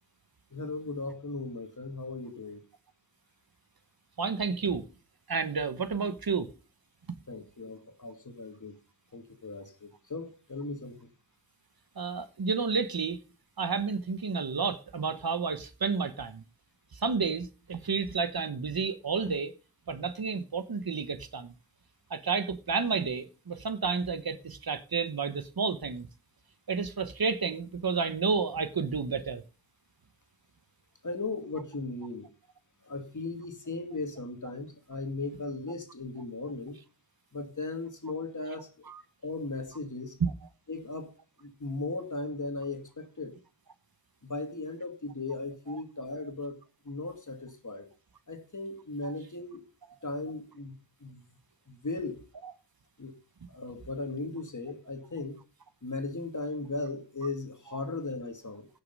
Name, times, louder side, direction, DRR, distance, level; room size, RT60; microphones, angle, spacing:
voice 1, 0.5-2.6 7.3-8.8 9.1-11.1 31.0-32.3 32.8-36.8 37.3-38.9 39.2-40.2 40.7-41.1 41.4-43.3 44.2-46.6 46.8-47.9 48.3-49.6 50.0-50.7 51.0-51.2 51.7-52.2 53.0-53.2 53.5-55.4 55.8-58.7, left 3 dB, 50° left, 2.1 m, -37 dB
voice 2, 4.2-4.8 5.3-6.5 12.0-13.2 13.6-16.4 16.9-19.5 19.9-21.5 22.1-26.1 26.7-29.4 38.9-39.0 40.2-40.3 45.7-45.8 49.0-49.1, right 5 dB, 65° right, 1.1 m, -30 dB
16.0 x 6.7 x 5.3 m
wide cardioid pair, 85°, 40 cm